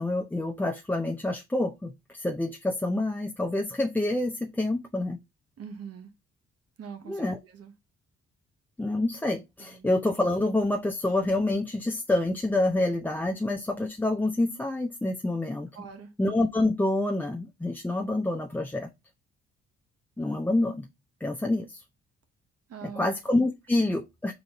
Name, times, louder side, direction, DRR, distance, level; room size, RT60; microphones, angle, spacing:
voice 1, 0.0-5.2 7.1-7.4 8.8-15.7 16.2-18.9 20.2-20.9 21.2-21.8 22.8-24.3, left 2 dB, 5° left, 0.5 m, -27 dB
voice 2, 5.6-6.1 6.8-7.7 9.6-9.9 15.7-16.1 21.4-21.5 22.7-23.1, right 6 dB, 55° right, 1.0 m, -42 dB
3.9 x 3.8 x 2.9 m
supercardioid pair, 60°, 29 cm